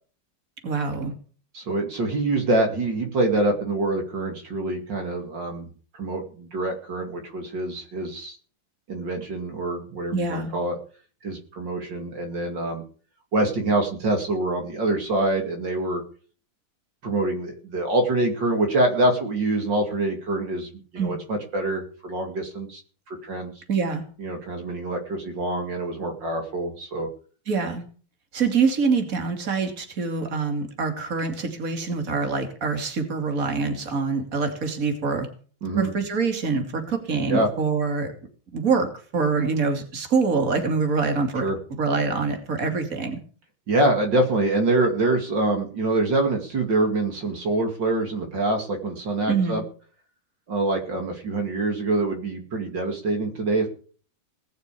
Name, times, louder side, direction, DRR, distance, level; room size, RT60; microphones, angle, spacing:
voice 1, 0.6-1.1 10.1-10.5 21.0-21.1 23.7-24.0 27.5-27.8 28.3-35.3 35.8-38.1 38.5-38.9 39.1-41.5 41.8-43.2 49.3-49.6, right 4 dB, 45° right, 5 dB, 3.1 m, -25 dB
voice 2, 1.5-8.4 8.9-10.8 11.2-12.8 13.3-16.0 17.0-22.8 23.1-23.5 24.2-27.1 35.6-35.9 37.3-37.5 41.4-41.6 43.7-49.6 50.5-53.7, right 2 dB, 65° right, 3 dB, 3.1 m, -25 dB
20.0 x 6.8 x 8.4 m, 0.42 s
omnidirectional pair, 2.1 m